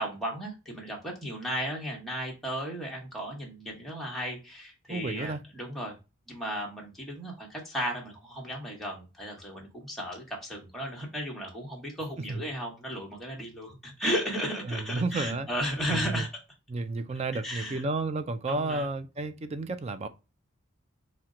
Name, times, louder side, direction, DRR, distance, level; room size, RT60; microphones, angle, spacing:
voice 1, 0.0-6.0 6.3-16.3 17.4-17.8 18.5-18.9, equal, ahead, 1.1 m, -35 dB
voice 2, 4.9-5.4 12.3-12.4 14.7-15.5 15.9-16.3 16.7-20.1, right 3 dB, 30° right, 0.3 m, -32 dB
4.3 x 2.1 x 3.6 m
head